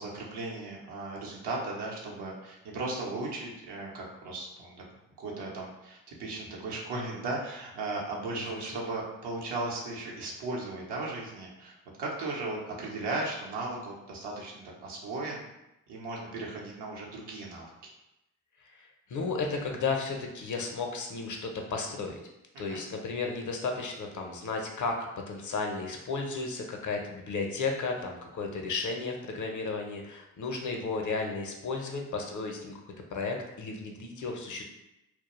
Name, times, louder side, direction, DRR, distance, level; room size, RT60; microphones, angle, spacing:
voice 1, 0.0-4.8 5.2-15.4 15.9-17.7 22.7-22.8, right 2 dB, 70° right, -3 dB, 0.8 m, -36 dB
voice 2, 18.7-22.2 22.6-25.0 25.3-32.8 33.1-34.6, left 4 dB, 45° left, 2 dB, 0.6 m, -33 dB
2.3 x 2.1 x 3.0 m, 0.92 s
hypercardioid pair, 40°, 43 cm